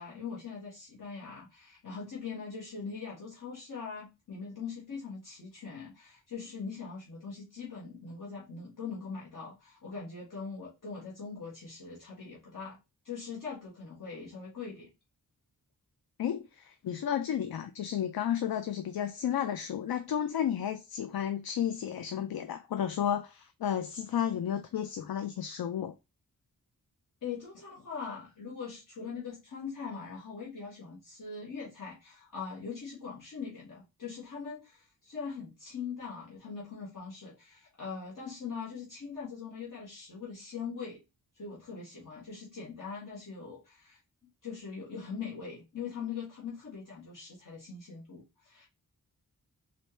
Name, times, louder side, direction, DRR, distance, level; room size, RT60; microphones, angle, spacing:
voice 1, 0.0-12.8 13.0-14.9 27.2-41.0 41.3-44.0 44.4-48.7, left 5 dB, 60° left, 1.6 m, -41 dB
voice 2, 16.2-25.9, left 9 dB, 80° left, 0.5 m, -32 dB
4.2 x 2.6 x 3.2 m
wide cardioid pair, 110°, 36 cm